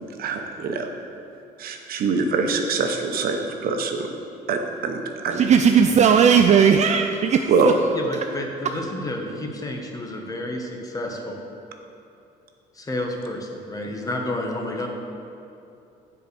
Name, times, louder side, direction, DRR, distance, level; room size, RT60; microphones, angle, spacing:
voice 1, 0.2-1.1 1.6-4.1 4.5-5.4 7.5-7.8, right 4 dB, 60° right, 4 dB, 0.9 m, -24 dB
voice 2, 5.3-7.7, right 7 dB, 45° right, 6 dB, 0.4 m, -17 dB
voice 3, 7.9-11.4 12.8-14.9, left 1 dB, 20° left, 2 dB, 1.1 m, -30 dB
7.8 x 4.8 x 6.8 m, 2.8 s
cardioid pair, 110°, 17 cm